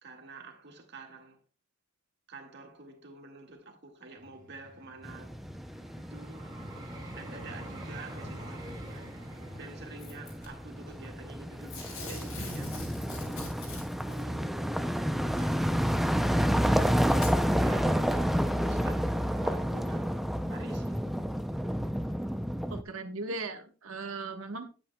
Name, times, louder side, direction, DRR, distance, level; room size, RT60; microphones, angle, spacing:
voice 1, 0.0-1.4 2.3-5.4 6.0-6.5 7.1-9.1 9.5-13.6 14.1-16.1 17.6-18.3 18.7-21.0, right 3 dB, 55° right, 1.8 m, -49 dB
Vehicle, 4.2-13.3 13.9-14.1, right 1 dB, 20° right, 1.9 m, -48 dB
sound 1, 5.0-22.8, equal, ahead, 0.4 m, -30 dB
Packing tape duct tape / Tearing, 10.0-10.5 11.7-14.2 15.4-15.5 16.4-16.5 17.1-17.4 18.0-18.1, left 2 dB, 85° left, 5.5 m, -42 dB
voice 2, 22.7-24.6, right 3 dB, 85° right, 1.3 m, -37 dB
11.0 x 8.7 x 2.2 m
head